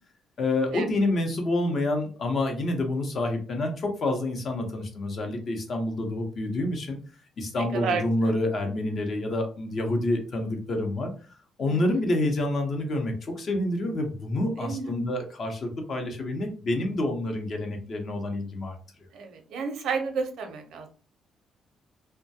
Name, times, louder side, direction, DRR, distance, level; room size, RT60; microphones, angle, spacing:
voice 1, 0.4-7.0 7.4-11.1 11.6-18.7, left 2 dB, 55° left, 4 dB, 0.7 m, -28 dB
voice 2, 7.6-8.0 11.7-11.8 14.6-14.9 19.1-20.9, right 5 dB, 80° right, 5 dB, 0.6 m, -31 dB
2.2 x 2.1 x 2.7 m, 0.38 s
cardioid pair, 90°, 0 cm